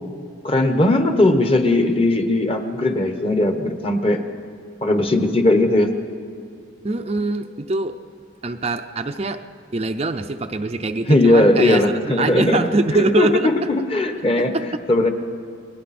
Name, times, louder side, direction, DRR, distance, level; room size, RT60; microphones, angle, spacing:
voice 1, 0.4-4.2 4.8-5.9 11.0-15.1, left 1 dB, 30° left, 6 dB, 1.1 m, -18 dB
voice 2, 6.8-8.0 8.4-9.4 9.7-13.5 14.4-14.6, right 3 dB, 30° right, 6 dB, 0.5 m, -23 dB
29.5 x 21.0 x 4.3 m, 2.3 s
head